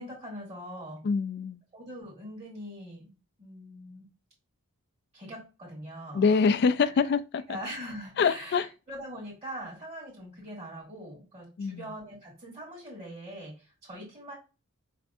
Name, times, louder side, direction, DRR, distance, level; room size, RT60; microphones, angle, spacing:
voice 1, 0.0-1.0 1.7-4.1 5.1-6.4 6.9-7.1 7.5-14.3, equal, 30° right, 1.8 m, -42 dB
voice 2, 1.0-1.6 6.1-7.6 8.2-8.7 11.6-11.9, left 5 dB, 50° left, 0.3 m, -25 dB
5.7 x 3.3 x 2.6 m
head